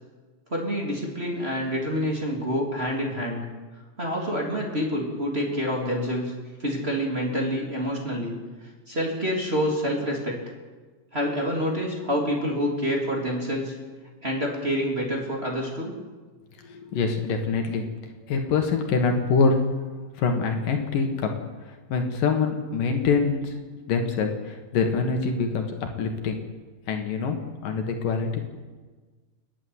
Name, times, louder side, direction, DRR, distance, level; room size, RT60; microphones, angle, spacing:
voice 1, 0.5-3.4 4.0-6.3 6.6-8.4 8.9-10.4 11.1-13.8 14.2-15.9, equal, 15° right, -2 dB, 3.3 m, -27 dB
voice 2, 16.6-17.9 18.3-19.6 20.2-21.3 21.9-23.5 23.9-26.4 26.9-28.4, left 4 dB, 70° left, 4 dB, 3.4 m, -25 dB
30.0 x 10.0 x 9.6 m, 1.4 s
omnidirectional pair, 4.1 m